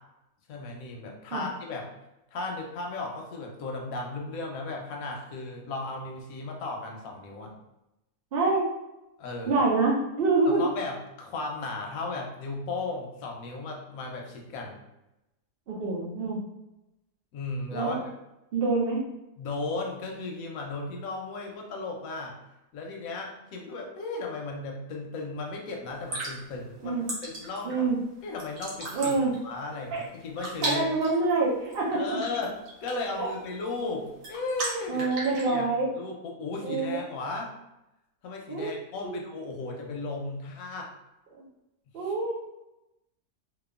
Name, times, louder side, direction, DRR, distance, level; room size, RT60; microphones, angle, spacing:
voice 1, 0.5-1.9 2.3-7.5 9.2-9.6 10.4-14.8 17.3-18.0 19.4-22.4 22.7-27.0 27.2-27.8 28.2-29.1 29.4-30.8 31.9-32.5 32.8-35.1 35.5-35.7 36.0-37.5 38.2-40.9, left 3 dB, 70° left, 1 dB, 0.9 m, -35 dB
voice 2, 8.3-8.6 9.5-10.6 15.7-16.4 17.7-18.0 18.5-19.0 26.8-27.1 27.6-28.0 28.9-29.3 29.9-30.0 30.6-32.0 33.2-33.3 34.9-35.9 36.6-37.0 38.5-38.7 39.0-39.2 41.3-41.5 41.9-42.3, right 3 dB, 85° right, -3 dB, 0.5 m, -26 dB
sound 1, 25.9-35.5, right 2 dB, 60° right, 1.1 m, -38 dB
2.8 x 2.3 x 2.3 m, 0.93 s
omnidirectional pair, 1.7 m